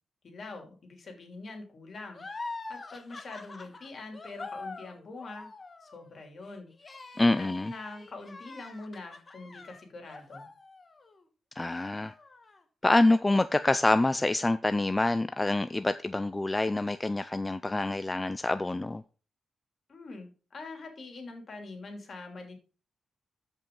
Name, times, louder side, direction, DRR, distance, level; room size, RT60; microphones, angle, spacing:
voice 1, 0.2-2.2 2.7-5.5 5.8-6.7 7.1-10.5 19.9-22.6, left 3 dB, 55° left, 2.9 m, -44 dB
sound 1, 2.1-11.2 11.6-12.6, left 3 dB, 35° left, 1.3 m, -44 dB
voice 2, 7.2-7.7 11.6-12.1 12.8-19.0, left 2 dB, 20° left, 0.4 m, -26 dB
13.5 x 5.4 x 3.8 m
cardioid pair, 85°, 0 cm